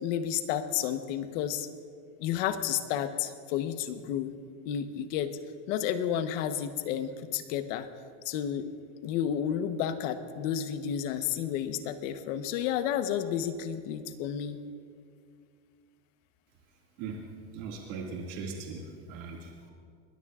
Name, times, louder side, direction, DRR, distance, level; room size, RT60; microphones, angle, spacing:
voice 1, 0.0-1.7 2.2-4.3 4.6-5.3 5.7-7.9 8.2-8.7 9.0-14.6, left 9 dB, 85° left, 9 dB, 1.1 m, -31 dB
voice 2, 17.0-19.7, right 4 dB, 80° right, -1 dB, 2.3 m, -40 dB
22.5 x 20.0 x 2.5 m, 2.2 s
supercardioid pair, 120°, 37 cm